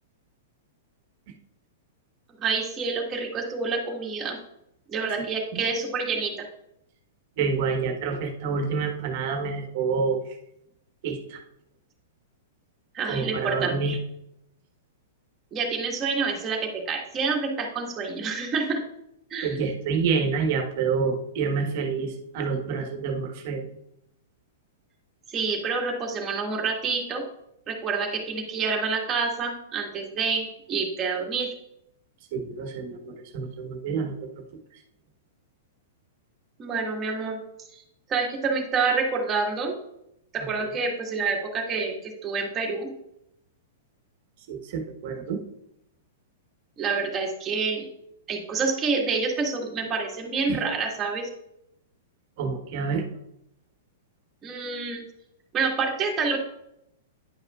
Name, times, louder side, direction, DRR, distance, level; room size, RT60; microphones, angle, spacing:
voice 1, 2.4-4.4 4.9-6.3 12.9-14.0 15.5-18.8 19.3-19.6 25.3-27.2 27.7-31.5 36.6-37.4 37.7-37.8 38.1-39.8 40.3-42.9 46.8-47.9 48.3-51.3 54.4-55.0 55.5-56.4, right 4 dB, 25° right, 0 dB, 1.7 m, -27 dB
voice 2, 7.4-10.2 11.0-11.4 13.0-14.0 19.4-23.7 32.3-34.1 40.6-40.7 44.5-45.4 50.5-50.6 52.4-53.0, right 5 dB, 55° right, 5 dB, 1.3 m, -28 dB
10.5 x 5.5 x 2.4 m, 0.79 s
hypercardioid pair, 120°, 0 cm